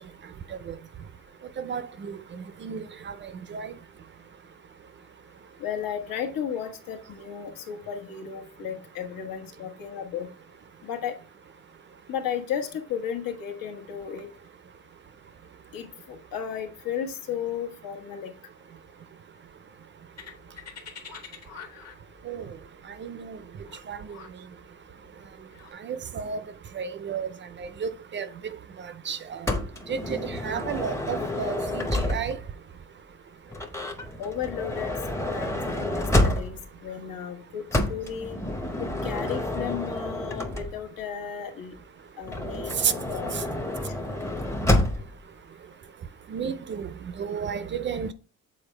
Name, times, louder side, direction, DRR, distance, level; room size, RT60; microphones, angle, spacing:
voice 1, 1.6-2.2 2.6-3.1 3.5-3.7 22.3-22.4 23.0-23.4 23.9-24.0 25.8-26.4 26.7-27.3 27.6-28.3 29.1-29.5 29.9-32.4 42.8-42.9 46.3-46.9 47.2-48.1, right 7 dB, 35° right, 0.4 m, -32 dB
voice 2, 5.6-10.3 10.8-11.2 12.1-14.3 15.7-18.3 34.2-37.6 37.9-38.4 38.8-41.7 42.2-43.3, left 8 dB, 80° left, 1.3 m, -34 dB
sound 1, 20.2-25.7, left 6 dB, 50° left, 1.3 m, -45 dB
Motor vehicle (road) / Sliding door, 29.5-32.5 33.5-36.8 37.7-41.0 42.2-45.2, left 1 dB, 10° left, 0.6 m, -28 dB
7.1 x 4.2 x 3.2 m
cardioid pair, 170°, 33 cm